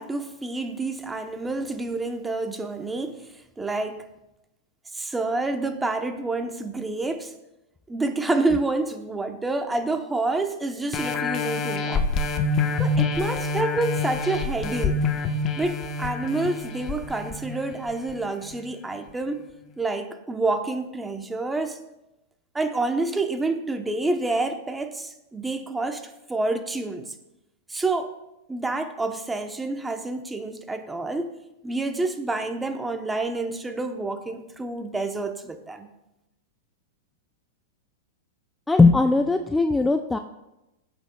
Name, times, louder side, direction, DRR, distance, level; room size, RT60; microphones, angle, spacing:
voice 1, 0.0-4.0 4.9-7.3 7.9-12.0 12.8-15.0 15.6-19.4 19.8-21.8 22.5-27.1 27.7-28.1 28.5-31.3 31.6-35.9, right 2 dB, 10° right, 7 dB, 0.9 m, -28 dB
sound 1, 10.9-18.1 18.6-18.7, left 3 dB, 35° left, 1.0 m, -27 dB
voice 2, 38.7-40.2, left 3 dB, 10° left, 6 dB, 0.4 m, -19 dB
17.0 x 8.0 x 2.3 m, 0.94 s
hypercardioid pair, 125°, 0 cm